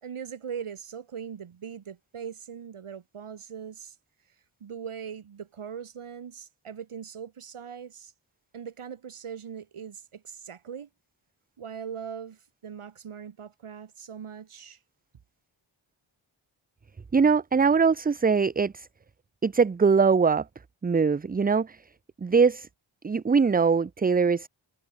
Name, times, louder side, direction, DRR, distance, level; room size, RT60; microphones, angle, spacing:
voice 1, 0.0-4.0 4.6-8.1 8.5-10.9 11.6-14.8, right 7 dB, 80° right, 2.9 m, -40 dB
voice 2, 17.1-18.9 19.4-20.4 20.8-21.8 22.2-22.7 23.0-24.5, right 5 dB, 20° right, 0.4 m, -22 dB
cardioid pair, 65°, 49 cm